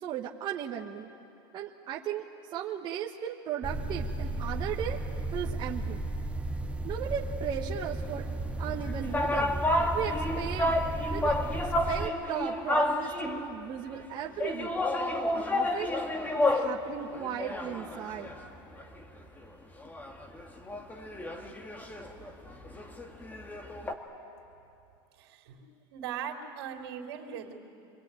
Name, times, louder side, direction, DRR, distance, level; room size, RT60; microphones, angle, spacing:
voice 1, 0.0-1.1 1.5-5.0 5.3-6.0 6.8-8.3 8.6-9.6 9.9-10.8 11.1-11.3 11.9-14.7 15.3-16.0 16.3-18.3, right 9 dB, 35° right, -1 dB, 1.3 m, -36 dB
sound 1, 3.6-12.1, right 2 dB, 10° right, 0.8 m, -34 dB
sound 2, 8.7-13.5 14.4-16.8 17.1-19.0 19.4-19.5 19.8-23.9, left 1 dB, 15° left, 1.9 m, -30 dB
voice 2, 25.2-25.6 25.9-27.5, right 8 dB, 75° right, 2 dB, 3.4 m, -39 dB
25.5 x 22.0 x 9.1 m, 2.7 s
supercardioid pair, 135°, 13 cm